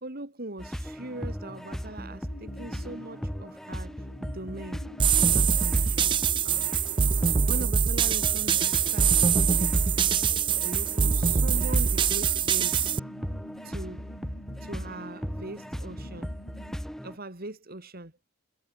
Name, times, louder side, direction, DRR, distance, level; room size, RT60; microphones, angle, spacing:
voice 1, 0.0-4.8 5.2-6.1 6.4-9.9 10.2-10.3 10.6-13.0 13.6-14.0 14.6-16.3 17.0-18.1, right 2 dB, 45° right, 2.5 m, -41 dB
sound 1, 0.6-17.2, equal, ahead, 1.5 m, -37 dB
sound 2, 2.2-17.1, left 2 dB, 75° left, 2.6 m, -49 dB
sound 3, 5.0-13.0, right 7 dB, 25° right, 0.3 m, -24 dB
head